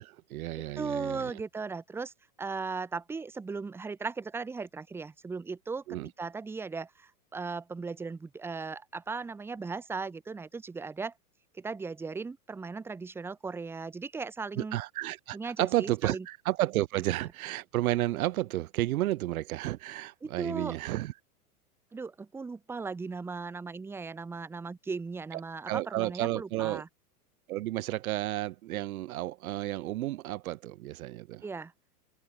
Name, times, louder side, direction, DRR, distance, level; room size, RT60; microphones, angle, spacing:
voice 1, 0.0-1.4 5.9-6.1 14.6-21.1 25.3-25.4 25.7-26.8 27.5-31.5, right 16 dB, 65° right, 1.4 m, -32 dB
voice 2, 0.8-2.1 2.4-11.1 11.5-14.8 15.3-16.3 20.2-20.8 21.9-26.9 31.4-31.7, right 4 dB, 5° right, 0.5 m, -37 dB
open air
hypercardioid pair, 110°, 47 cm